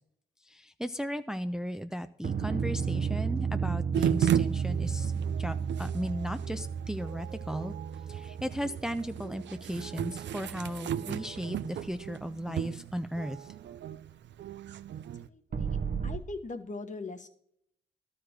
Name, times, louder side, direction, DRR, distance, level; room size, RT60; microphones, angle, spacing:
voice 1, 0.4-5.1 5.4-7.7 8.1-13.5, equal, 5° right, 9 dB, 0.5 m, -36 dB
sound 1, 2.2-10.6 15.5-16.2, right 6 dB, 55° right, 1.0 m, -33 dB
sound 2, 3.9-15.3, right 9 dB, 75° right, 0.5 m, -35 dB
voice 2, 14.9-15.8 16.0-17.3, left 3 dB, 40° left, 7 dB, 1.3 m, -41 dB
12.5 x 4.9 x 6.6 m, 0.71 s
cardioid pair, 60°, 19 cm